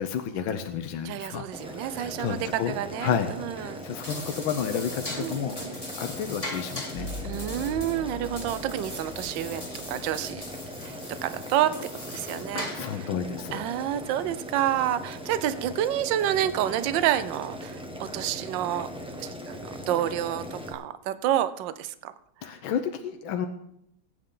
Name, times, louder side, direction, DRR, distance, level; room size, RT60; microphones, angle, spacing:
voice 1, 0.0-3.3 3.6-7.1 8.2-8.3 12.5-13.7 22.4-23.5, left 8 dB, 80° left, 7 dB, 1.6 m, -31 dB
voice 2, 1.0-3.8 5.2-5.7 7.2-9.6 9.9-10.4 10.8-11.8 12.1-12.8 13.5-18.9 19.2-19.6 19.9-22.1, right 11 dB, 70° right, 13 dB, 1.4 m, -29 dB
Boiling, 1.5-20.7, equal, 5° right, 1.2 m, -40 dB
sound 1, 3.8-13.1, left 1 dB, 15° left, 2.2 m, -40 dB
sound 2, 7.0-10.5, left 1 dB, 40° left, 1.7 m, -41 dB
21.0 x 9.3 x 3.8 m, 0.74 s
omnidirectional pair, 2.2 m